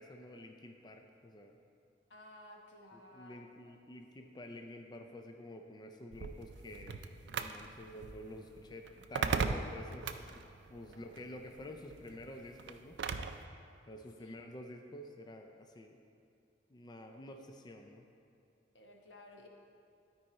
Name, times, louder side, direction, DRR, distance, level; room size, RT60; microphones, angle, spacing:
voice 1, 0.0-1.6 2.9-10.4 10.7-13.0 13.9-16.0 16.7-18.1, left 1 dB, 25° left, 4 dB, 0.4 m, -49 dB
voice 2, 2.1-3.7 10.9-11.2 14.2-14.4 18.7-19.5, left 1 dB, 90° left, 1 dB, 1.1 m, -56 dB
sound 1, 6.1-13.4, right 5 dB, 70° right, 0.4 m, -39 dB
12.0 x 4.7 x 4.2 m, 2.6 s
head